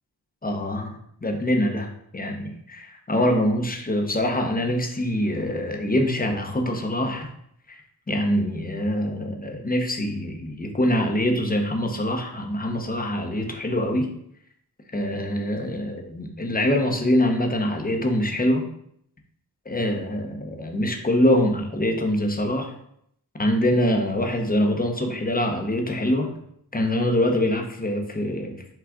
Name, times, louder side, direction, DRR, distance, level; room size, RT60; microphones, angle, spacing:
voice 1, 0.4-7.3 7.7-7.8 8.1-14.1 14.9-18.6 19.7-22.7 23.4-26.3 26.7-28.6, left 1 dB, 20° left, 3 dB, 0.8 m, -24 dB
6.1 x 2.4 x 3.6 m, 0.71 s
cardioid pair, 60°, 40 cm